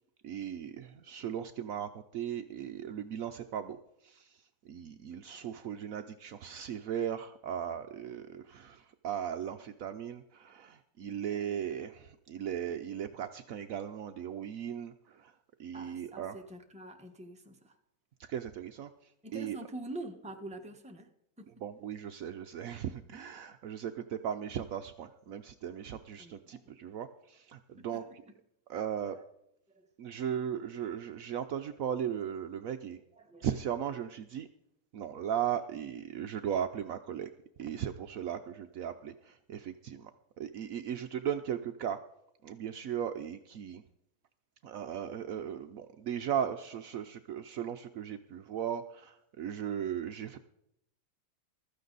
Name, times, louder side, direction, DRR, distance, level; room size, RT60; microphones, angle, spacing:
voice 1, 0.2-16.4 18.2-19.6 21.6-28.0 28.7-29.2 30.0-33.0 33.4-34.5 34.9-37.3 37.6-40.1 40.4-42.0 42.4-43.8 44.6-50.4, right 9 dB, 75° right, 8 dB, 0.7 m, -37 dB
voice 2, 5.1-5.5 15.7-17.8 19.2-21.1 21.4-21.5 26.2-26.8 27.8-28.4 28.9-29.2 29.7-29.9 33.1-33.5, right 2 dB, 5° right, 3 dB, 0.9 m, -46 dB
15.5 x 13.0 x 4.0 m, 0.80 s
omnidirectional pair, 2.2 m